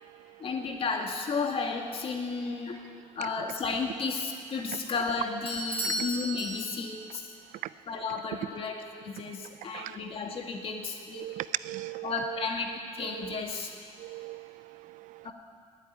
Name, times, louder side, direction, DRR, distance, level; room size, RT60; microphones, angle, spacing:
voice 1, 0.4-2.8 3.2-7.3 7.9-11.3 12.0-12.7 12.9-13.7 15.2-15.3, left 4 dB, 45° left, 2.2 m, -33 dB
Bell / Doorbell, 5.5-7.2, equal, 45° right, 3.7 m, -34 dB
voice 2, 11.1-12.5 13.0-13.4 14.0-15.3, right 16 dB, 85° right, 0.4 m, -38 dB
18.5 x 8.0 x 9.5 m
cardioid pair, 130°, 13 cm